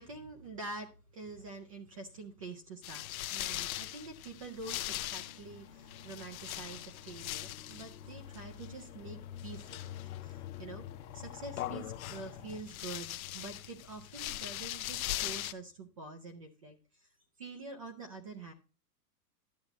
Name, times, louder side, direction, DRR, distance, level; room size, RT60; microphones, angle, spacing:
voice 1, 0.0-10.9 11.1-17.1 17.4-18.5, right 3 dB, 25° right, 6 dB, 0.4 m, -46 dB
sound 1, 2.8-15.5, left 14 dB, 60° left, 0.6 m, -41 dB
sound 2, 4.6-12.6, left 8 dB, 20° left, 0.7 m, -53 dB
11.5 x 7.8 x 2.9 m, 0.34 s
hypercardioid pair, 160°, 47 cm